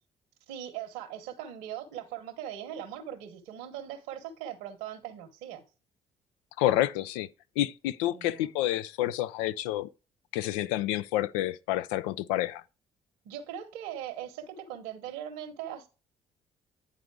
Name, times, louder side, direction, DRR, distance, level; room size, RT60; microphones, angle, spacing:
voice 1, 0.5-5.6 8.1-8.5 13.2-15.9, right 10 dB, 85° right, 1.0 m, -40 dB
voice 2, 6.6-7.3 7.6-9.9 10.3-12.6, left 14 dB, 85° left, 0.4 m, -29 dB
9.4 x 4.0 x 4.7 m
hypercardioid pair, 55°, 14 cm